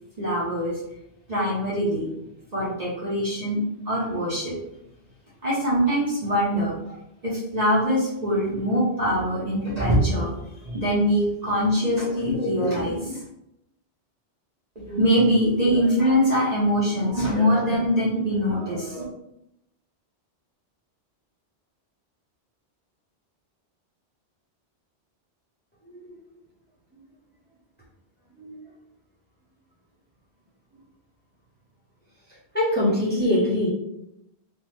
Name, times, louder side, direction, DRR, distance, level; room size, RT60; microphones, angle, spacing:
voice 1, 0.2-0.8 1.3-2.1 2.5-3.6 3.9-4.5 5.4-7.0 7.2-10.3 10.6-13.2 14.8-19.0, equal, 40° right, -7 dB, 0.8 m, -23 dB
voice 2, 32.5-33.7, left 1 dB, 10° left, -7 dB, 0.8 m, -23 dB
3.3 x 2.0 x 3.1 m, 0.82 s
omnidirectional pair, 1.2 m